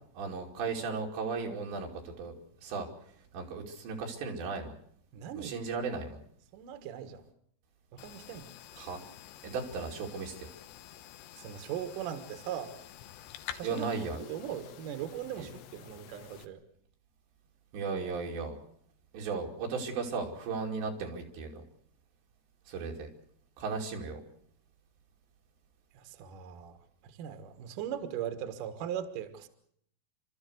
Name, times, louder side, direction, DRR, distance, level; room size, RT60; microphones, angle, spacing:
voice 1, 0.1-2.3 2.6-2.9 3.3-4.7 5.4-6.2 8.7-9.0 9.4-10.5 13.6-14.2 15.4-15.5 17.7-18.6 19.1-21.6 22.7-23.1 23.6-24.2, right 4 dB, 85° right, 1 dB, 4.9 m, -36 dB
voice 2, 5.1-5.5 6.5-7.2 7.9-8.5 11.4-12.8 13.5-13.9 14.2-16.6 25.9-26.8 27.0-29.5, right 9 dB, 60° right, 8 dB, 2.7 m, -39 dB
sound 1, 8.0-16.5, left 11 dB, 85° left, 3.4 m, -49 dB
29.0 x 13.5 x 8.0 m, 0.68 s
omnidirectional pair, 4.9 m